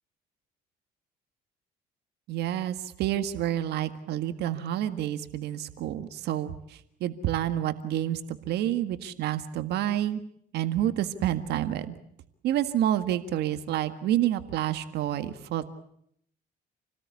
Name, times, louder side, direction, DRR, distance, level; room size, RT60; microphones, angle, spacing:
voice 1, 2.3-10.2 10.5-12.0 12.4-15.7, right 12 dB, 75° right, 10 dB, 1.8 m, -29 dB
29.0 x 19.0 x 8.5 m, 0.70 s
cardioid pair, 110°, 17 cm